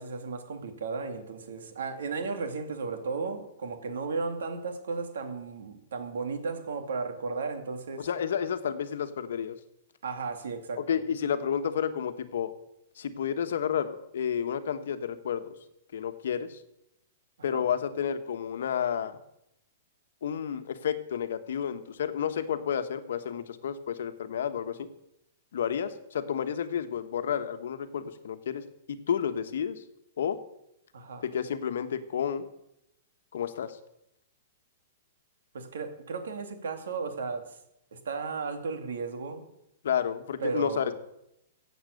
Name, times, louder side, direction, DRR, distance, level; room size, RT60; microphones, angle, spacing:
voice 1, 0.0-8.1 10.0-11.0 17.5-17.6 30.9-31.2 35.5-37.5 37.9-39.4 40.4-40.9, right 4 dB, 90° right, 6 dB, 2.5 m, -34 dB
voice 2, 8.0-9.6 10.8-12.5 13.0-15.5 15.9-16.6 17.4-19.2 20.2-24.9 25.5-28.6 28.9-29.8 30.2-30.4 31.2-32.5 33.3-33.8 39.8-40.9, left 8 dB, 70° left, 10 dB, 1.2 m, -31 dB
15.5 x 8.1 x 6.6 m, 0.81 s
hypercardioid pair, 175°, 0 cm